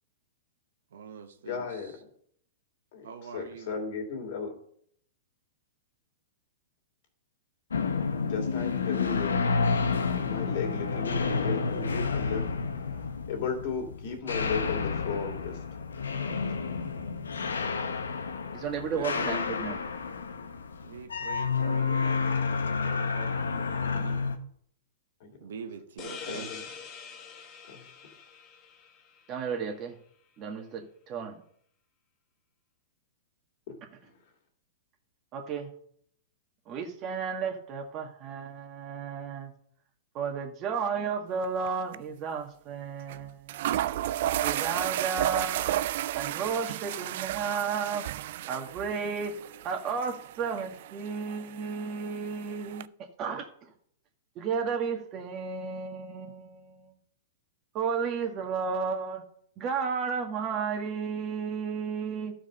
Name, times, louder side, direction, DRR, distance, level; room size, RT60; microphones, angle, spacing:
voice 1, 0.9-1.7 3.0-3.8 18.9-19.6 20.8-22.4 22.7-24.2 25.4-26.5, right 6 dB, 75° right, 1.1 m, -43 dB
voice 2, 1.4-1.9 2.9-3.1 3.3-4.5 8.2-9.5 10.1-12.5 12.8-13.0 13.3-15.6 16.2-16.7 19.2-19.4 25.2-25.5 26.3-26.6 27.7-27.8 33.7-33.8 34.0-34.1, left 5 dB, 55° left, 2.8 m, -35 dB
sound 1, 7.7-24.4, left 5 dB, 85° left, 1.0 m, -30 dB
voice 3, 18.5-19.7 29.3-30.0 30.4-31.4 35.3-35.7 36.7-39.5 40.1-43.8 44.4-45.8 46.1-48.1 48.5-49.4 49.6-52.8 53.2-53.4 54.3-56.9 57.7-59.3 59.6-62.3, right 6 dB, 35° right, 1.8 m, -33 dB
sound 2, 26.0-29.4, left 6 dB, 35° left, 1.6 m, -44 dB
sound 3, 41.4-41.7 41.9-42.0 43.1-43.2 43.5-52.9, right 13 dB, 60° right, 0.4 m, -33 dB
12.0 x 4.9 x 5.5 m
hypercardioid pair, 120°, 0 cm